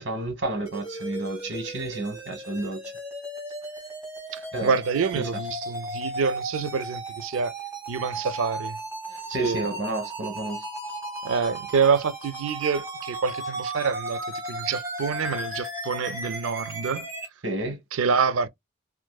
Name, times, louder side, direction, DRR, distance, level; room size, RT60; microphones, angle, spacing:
voice 1, 0.0-2.8 4.5-4.7 5.2-5.3 9.3-10.6 17.4-17.8, right 2 dB, 60° right, 1.0 m, -30 dB
sound 1, 0.7-17.3, right 1 dB, 15° right, 1.3 m, -35 dB
voice 2, 4.3-7.5 7.9-8.8 9.4-9.6 11.2-14.2 14.5-17.1 17.9-18.5, right 5 dB, 80° right, 0.4 m, -26 dB
3.7 x 2.5 x 2.2 m
head